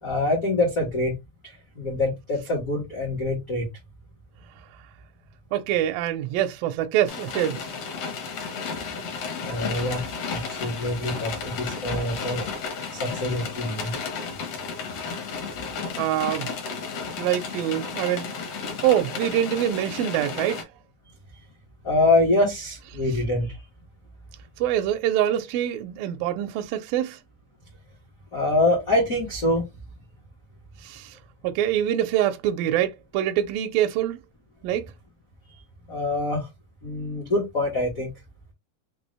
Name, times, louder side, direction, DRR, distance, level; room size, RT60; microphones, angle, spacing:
voice 1, 0.0-1.1 1.4-3.7 9.4-12.5 12.9-13.9 21.8-23.6 28.3-29.7 35.9-36.5 36.8-38.1, left 2 dB, 85° left, 0.7 m, -25 dB
voice 2, 5.5-7.6 16.0-16.5 17.2-18.3 18.8-20.6 24.6-27.2 30.8-31.1 31.4-34.2 34.6-34.9, right 11 dB, 85° right, 2.1 m, -25 dB
sound 1, 7.1-20.6, left 5 dB, 65° left, 1.6 m, -33 dB
6.1 x 2.6 x 3.2 m
omnidirectional pair, 4.6 m